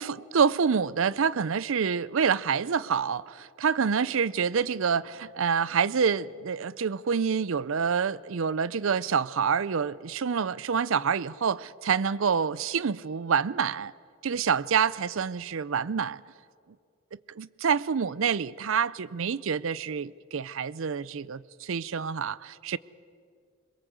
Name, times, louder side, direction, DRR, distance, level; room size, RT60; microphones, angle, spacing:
voice 1, 0.0-13.9 14.2-16.2 17.1-22.8, right 6 dB, 65° right, 0.5 m, -27 dB
22.0 x 22.0 x 8.0 m
head